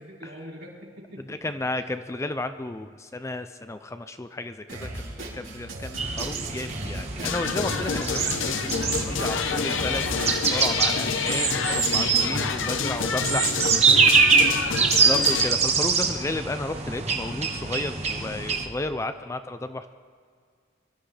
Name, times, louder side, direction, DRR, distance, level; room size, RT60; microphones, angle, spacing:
voice 1, 0.0-1.4 1.7-1.8 5.9-6.1 14.4-14.6, equal, 65° right, -6 dB, 4.8 m, -45 dB
voice 2, 1.3-13.5 14.5-19.9, left 2 dB, 15° left, 10 dB, 0.4 m, -33 dB
Drum kit, 4.7-10.7, right 2 dB, 85° right, 3.9 m, -37 dB
sound 1, 6.0-18.7, right 5 dB, 35° right, 1.2 m, -24 dB
sound 2, 7.2-15.5, left 5 dB, 75° left, 0.8 m, -28 dB
24.0 x 12.5 x 3.3 m, 2.1 s
head